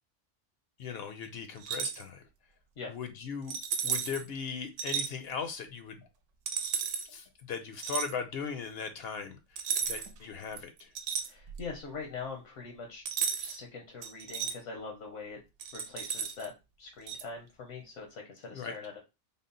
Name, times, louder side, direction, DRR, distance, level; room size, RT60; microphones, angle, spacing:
voice 1, 0.8-2.3 2.9-3.6 3.8-6.1 7.0-10.9 18.5-18.8, left 6 dB, 65° left, 7 dB, 0.7 m, -39 dB
sound 1, 1.6-2.0 3.5-4.2 4.8-5.1 6.5-7.1 7.8-8.1 9.6-10.2 10.5-11.7 13.1-13.6 14.0-14.5 15.6-16.5 17.1-17.2, right 7 dB, 80° right, 0.9 m, -34 dB
voice 2, 11.2-13.0 13.4-15.4 15.7-16.5 16.8-19.0, left 4 dB, 85° left, 1 dB, 1.2 m, -43 dB
3.6 x 2.1 x 3.8 m, 0.26 s
omnidirectional pair, 1.2 m